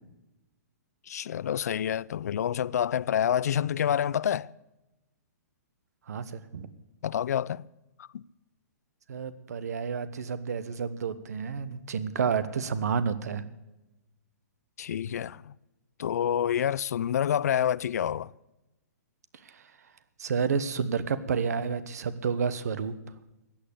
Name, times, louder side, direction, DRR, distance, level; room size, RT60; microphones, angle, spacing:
voice 1, 1.1-4.5 7.0-7.6 8.1-8.2 14.8-15.5 16.0-18.3, left 9 dB, 65° left, 0.4 m, -28 dB
voice 2, 6.1-6.7 9.1-13.4 19.4-19.6 20.2-22.9, right 6 dB, 70° right, 1.2 m, -30 dB
15.0 x 9.0 x 8.4 m
hypercardioid pair, 125°, 9 cm